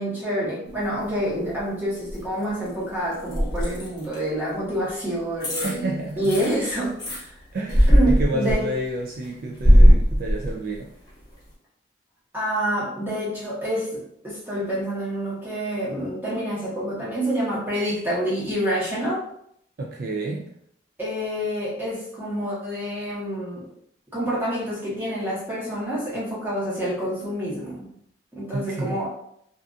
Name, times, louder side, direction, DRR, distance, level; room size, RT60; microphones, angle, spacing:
voice 1, 0.0-5.9 6.2-7.3 7.9-8.6 12.3-19.2 21.0-23.6 24.1-27.9 28.3-29.1, equal, 10° right, -8 dB, 1.0 m, -27 dB
sound 1, 0.7-1.6 2.0-4.2 4.9-5.0 5.4-5.8 6.1-7.2 7.7-8.9 9.2-10.8 11.2-11.3, equal, 25° left, 0.9 m, -18 dB
voice 2, 5.6-6.4 7.5-10.9 19.8-20.6 28.5-29.0, right 1 dB, 55° right, 0 dB, 0.3 m, -30 dB
2.5 x 2.4 x 2.3 m, 0.70 s
head